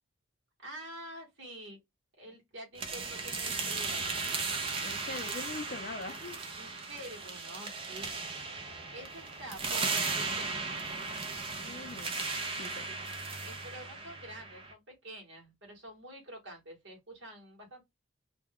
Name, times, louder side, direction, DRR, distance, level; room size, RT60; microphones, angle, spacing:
voice 1, 0.6-1.8 2.2-4.1 6.5-8.1 8.7-10.5 12.9-13.2 13.4-17.8, right 1 dB, 60° right, 1.1 m, -47 dB
sound 1, 2.8-14.7, right 4 dB, 25° right, 0.5 m, -36 dB
voice 2, 4.8-6.4 11.6-12.2 12.6-12.9, left 3 dB, 45° left, 0.4 m, -42 dB
2.3 x 2.2 x 3.5 m
head